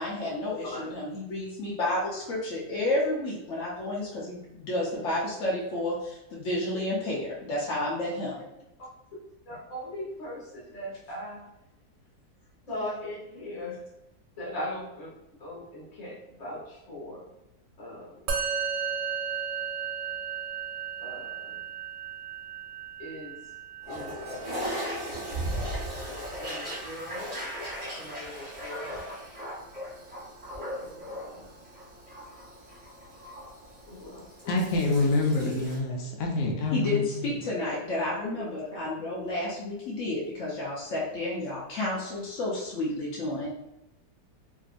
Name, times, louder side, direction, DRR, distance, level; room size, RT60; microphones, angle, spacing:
voice 1, 0.0-8.4 36.7-43.5, left 1 dB, 60° left, -6 dB, 0.8 m, -31 dB
voice 2, 9.5-11.4 12.7-13.8 14.4-15.1 15.4-17.3 17.8-18.3 21.0-21.6 23.0-23.4 23.9-24.7 26.4-27.5 28.0-29.0 30.6-31.5 33.9-34.6 34.8-34.9 35.6-35.7 37.6-37.7 38.4-38.8, left 1 dB, 25° left, -6 dB, 0.9 m, -40 dB
Musical instrument, 18.3-27.8, right 7 dB, 85° right, 1.2 m, -36 dB
Toilet flush, 23.8-35.8, equal, 25° right, 0.9 m, -37 dB
voice 3, 34.5-37.4, left 2 dB, 80° left, 1 dB, 1.2 m, -27 dB
2.9 x 2.5 x 2.5 m, 0.88 s
omnidirectional pair, 1.9 m